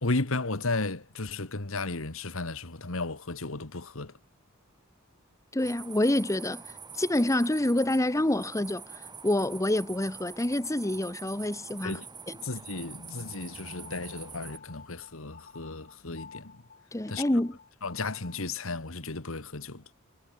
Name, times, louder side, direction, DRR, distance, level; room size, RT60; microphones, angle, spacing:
voice 1, 0.0-4.1 11.8-12.0 12.4-16.5 17.1-17.2 17.8-19.8, left 3 dB, 70° left, 1.9 m, -34 dB
voice 2, 5.5-6.6 6.9-12.0 12.3-12.4 16.9-17.6, left 1 dB, 15° left, 1.0 m, -27 dB
sound 1, 5.6-14.6, right 5 dB, 20° right, 6.4 m, -45 dB
sound 2, 13.6-18.5, left 5 dB, 45° left, 4.5 m, -51 dB
head